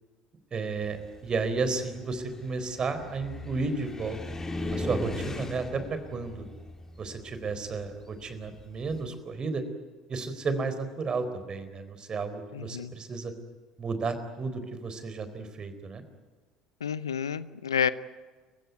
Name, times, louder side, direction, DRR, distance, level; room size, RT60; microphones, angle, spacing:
voice 1, 0.5-4.2 4.7-6.5 7.0-9.6 10.1-13.3 13.8-16.0, right 4 dB, 35° right, 10 dB, 4.1 m, -32 dB
Car, 0.8-9.0, left 2 dB, 20° left, 3.6 m, -38 dB
voice 2, 12.5-12.9 16.8-17.9, left 8 dB, 85° left, 16 dB, 0.7 m, -29 dB
29.5 x 16.5 x 9.5 m, 1.4 s
figure-of-eight pair, 65°, 2 cm